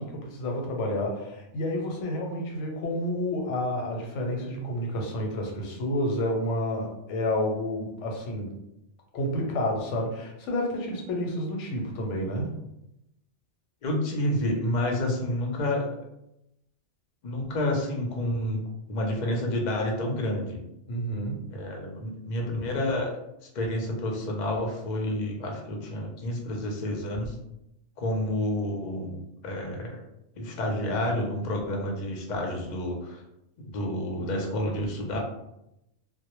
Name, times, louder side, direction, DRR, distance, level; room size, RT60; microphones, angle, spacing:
voice 1, 0.0-8.5 9.1-12.5 20.9-21.5, left 1 dB, 90° left, 1 dB, 0.9 m, -30 dB
voice 2, 13.8-15.9 17.2-18.6 18.9-20.6 21.5-23.1 23.5-27.3 28.0-30.0 30.4-33.2 33.7-35.2, left 1 dB, 50° left, 0 dB, 0.5 m, -29 dB
2.1 x 2.0 x 2.9 m, 0.85 s
omnidirectional pair, 1.2 m